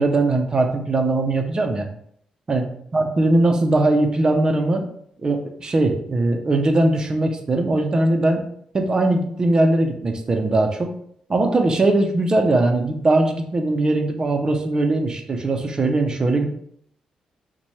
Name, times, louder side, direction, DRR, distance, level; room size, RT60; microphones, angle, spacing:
voice 1, 0.0-1.9 2.5-4.9 5.2-8.4 8.7-10.9 11.3-16.5, right 2 dB, 35° right, 4 dB, 0.6 m, -20 dB
3.0 x 2.2 x 4.1 m, 0.68 s
cardioid pair, 90°, 2 cm